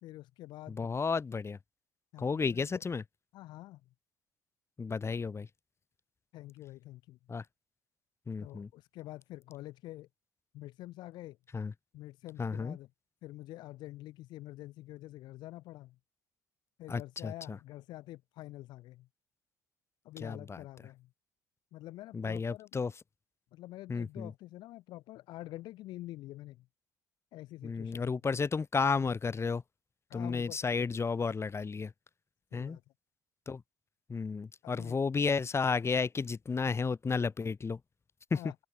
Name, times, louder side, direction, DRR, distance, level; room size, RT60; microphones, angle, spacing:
voice 1, 0.0-1.0 2.1-2.8 3.3-3.9 6.3-7.2 8.4-10.1 10.5-11.4 11.9-12.9 13.2-16.0 16.8-19.1 20.0-21.1 21.7-22.7 23.5-26.7 27.3-28.2 30.1-31.0 32.5-32.8 34.6-35.0 38.3-38.6, left 16 dB, 70° left, 3.6 m, -47 dB
voice 2, 0.7-1.6 2.2-3.0 4.8-5.5 7.3-7.4 8.3-8.7 11.5-11.7 12.4-12.8 16.9-17.6 20.2-20.6 22.1-22.9 23.9-24.3 27.6-29.6 30.1-31.9 32.5-32.8 33.5-33.6 34.1-37.8 38.3-38.4, left 5 dB, 35° left, 2.6 m, -32 dB
open air
hypercardioid pair, 55°, 8 cm